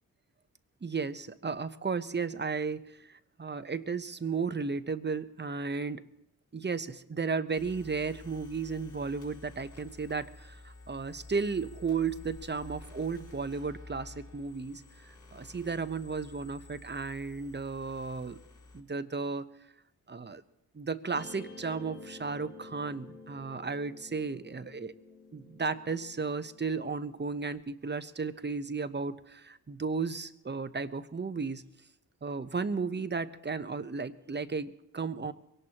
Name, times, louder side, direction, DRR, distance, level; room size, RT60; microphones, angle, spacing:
voice 1, 0.8-6.0 6.5-18.4 18.7-19.4 20.1-20.4 20.7-24.9 25.3-31.6 32.2-35.3, right 4 dB, 30° right, 11 dB, 1.0 m, -34 dB
sound 1, 7.5-18.8, left 3 dB, 55° left, 3.9 m, -51 dB
Guitar, 21.1-27.6, left 3 dB, 75° left, 3.5 m, -51 dB
22.5 x 18.0 x 3.0 m, 0.85 s
cardioid pair, 50°, 37 cm